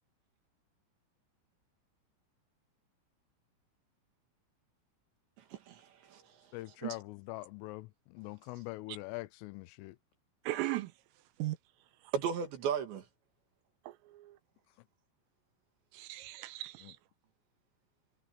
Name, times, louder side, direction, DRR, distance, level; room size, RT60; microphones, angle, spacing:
voice 1, 5.4-6.5 6.8-7.0 12.1-13.1, right 7 dB, 65° right, 4.4 m, -36 dB
voice 2, 6.5-10.0 16.8-16.9, left 21 dB, 85° left, 3.2 m, -43 dB
voice 3, 10.5-10.9 11.4-11.6 13.9-14.4 15.9-17.0, right 17 dB, 85° right, 3.6 m, -37 dB
omnidirectional pair, 5.9 m